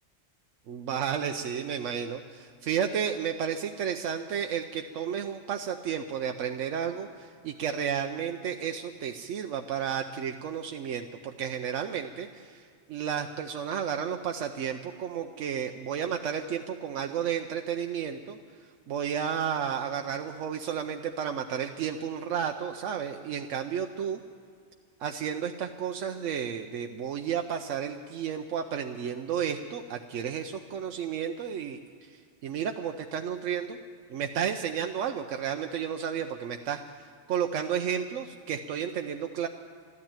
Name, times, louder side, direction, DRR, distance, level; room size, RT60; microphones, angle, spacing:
voice 1, 0.7-12.6 12.9-18.4 18.9-24.2 25.0-31.8 32.4-33.8 34.1-39.5, right 8 dB, 90° right, 5 dB, 1.0 m, -32 dB
13.5 x 12.5 x 8.8 m, 2.2 s
omnidirectional pair, 1.2 m